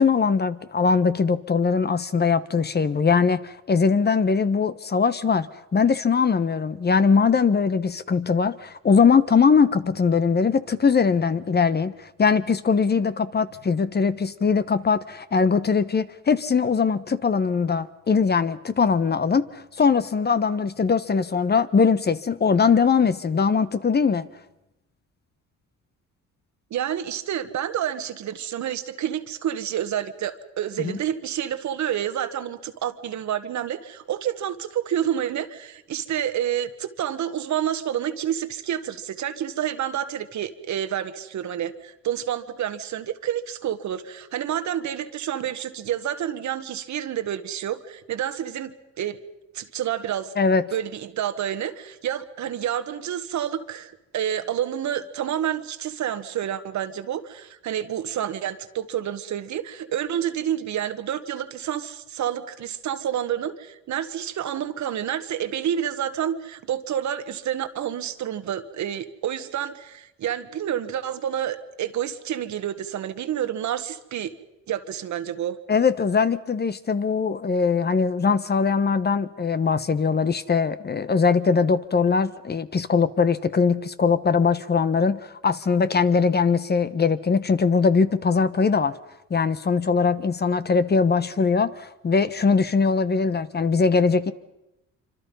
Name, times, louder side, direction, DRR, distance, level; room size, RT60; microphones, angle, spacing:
voice 1, 0.0-24.3 30.8-31.0 50.4-50.6 75.7-89.0 89.3-94.3, left 5 dB, 35° left, 13 dB, 1.1 m, -21 dB
voice 2, 26.7-49.2 49.5-50.3 50.7-74.3 74.7-75.6, right 10 dB, 70° right, 10 dB, 1.6 m, -29 dB
26.0 x 25.5 x 5.5 m, 0.90 s
cardioid pair, 90°, 30 cm